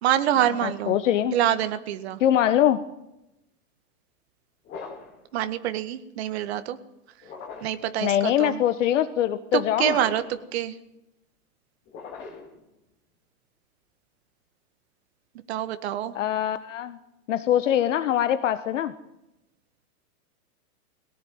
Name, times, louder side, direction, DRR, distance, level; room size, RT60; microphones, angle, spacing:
voice 1, 0.0-1.0 1.3-2.2 5.3-6.8 7.6-8.6 9.5-10.8 15.5-16.1, right 11 dB, 45° right, 11 dB, 1.9 m, -26 dB
voice 2, 0.6-1.3 2.2-2.8 8.0-10.0 16.1-17.0 17.3-18.9, left 11 dB, 50° left, 12 dB, 1.4 m, -23 dB
sound 1, 4.6-5.2 7.2-7.8 9.8-10.4 11.9-12.6, left 5 dB, 25° left, 4.1 m, -39 dB
23.0 x 17.0 x 9.6 m, 0.87 s
hypercardioid pair, 165°, 46 cm